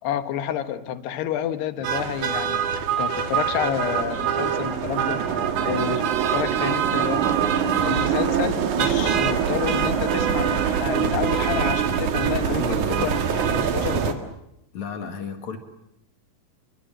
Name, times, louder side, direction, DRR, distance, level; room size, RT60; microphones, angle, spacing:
voice 1, 0.0-5.3 5.6-7.3 7.6-14.3, left 10 dB, 75° left, 11 dB, 3.3 m, -30 dB
sound 1, 1.8-14.1, right 8 dB, 55° right, 2.7 m, -23 dB
Bowed string instrument, 2.7-6.2, left 2 dB, 15° right, 1.3 m, -43 dB
voice 2, 7.6-8.0 12.4-13.1 14.7-15.6, left 5 dB, 50° left, 7 dB, 2.9 m, -33 dB
29.5 x 24.0 x 7.6 m, 0.82 s
omnidirectional pair, 5.0 m